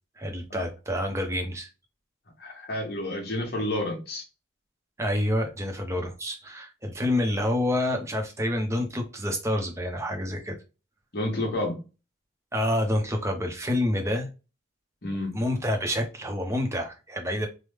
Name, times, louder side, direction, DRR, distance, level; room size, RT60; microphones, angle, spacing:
voice 1, 0.2-1.7 5.0-10.6 12.5-14.3 15.3-17.5, left 1 dB, 15° right, 3 dB, 0.6 m, -28 dB
voice 2, 2.4-4.2 11.1-11.8 15.0-15.4, left 1 dB, 50° left, 1 dB, 1.2 m, -30 dB
3.2 x 2.1 x 3.4 m, 0.30 s
head